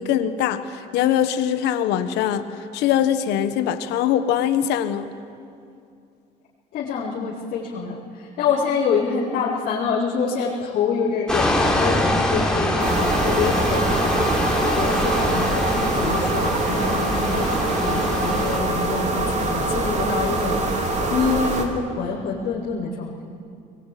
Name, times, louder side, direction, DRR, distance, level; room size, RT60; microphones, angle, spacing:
voice 1, 0.0-2.5 2.7-5.1, left 10 dB, 90° left, 9 dB, 1.3 m, -22 dB
voice 2, 6.7-14.2 14.7-20.8 21.1-23.1, left 5 dB, 70° left, -9 dB, 4.3 m, -26 dB
sound 1, 11.3-18.6, left 1 dB, 5° left, 3.7 m, -24 dB
sound 2, 12.8-21.6, right 2 dB, 45° right, 3.6 m, -24 dB
22.5 x 21.0 x 9.3 m, 2.5 s
cardioid pair, 110°, 17 cm